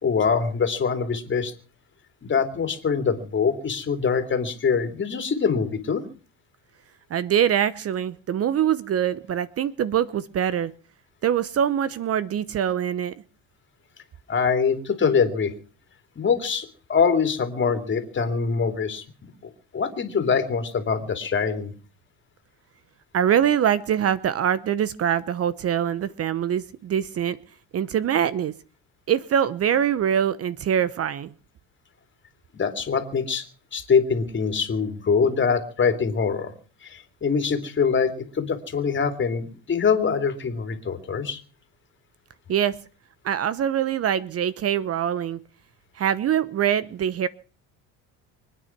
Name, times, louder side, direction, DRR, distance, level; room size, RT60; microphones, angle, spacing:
voice 1, 0.0-1.5 2.2-6.0 14.3-15.5 16.2-19.0 19.7-21.7 32.5-33.4 33.7-36.5 36.8-41.4, left 6 dB, 35° left, 7 dB, 2.9 m, -24 dB
voice 2, 7.1-10.7 11.2-13.1 23.1-27.4 27.7-28.5 29.1-31.3 42.5-42.8 43.2-45.4 46.0-47.3, right 9 dB, 45° right, 18 dB, 0.8 m, -23 dB
24.5 x 9.4 x 6.0 m, 0.40 s
cardioid pair, 105°, 35 cm